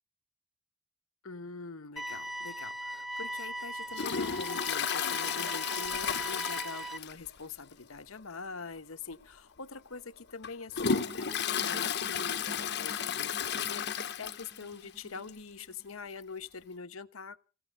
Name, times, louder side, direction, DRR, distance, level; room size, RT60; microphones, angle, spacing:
voice 1, 1.2-17.4, left 4 dB, 85° left, 1.1 m, -44 dB
sound 1, 2.0-7.0, right 2 dB, ahead, 0.8 m, -39 dB
Toilet flush, 3.9-7.4 7.6-7.7 8.2-8.3 9.1-9.2 9.8-14.7 15.0-15.1 15.3-15.4 16.4-16.5, left 7 dB, 55° left, 1.0 m, -33 dB
sound 2, 10.9-16.0, right 1 dB, 30° right, 5.6 m, -50 dB
16.5 x 12.0 x 6.6 m
head